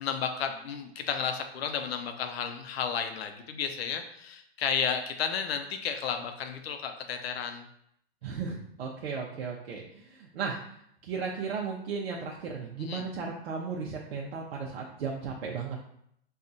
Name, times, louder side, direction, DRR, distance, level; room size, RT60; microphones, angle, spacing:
voice 1, 0.0-7.7 12.8-13.0, left 7 dB, 75° left, 6 dB, 0.6 m, -32 dB
voice 2, 8.2-10.6 11.0-15.8, right 5 dB, 80° right, -1 dB, 0.6 m, -35 dB
4.3 x 2.3 x 2.6 m, 0.71 s
hypercardioid pair, 125°, 31 cm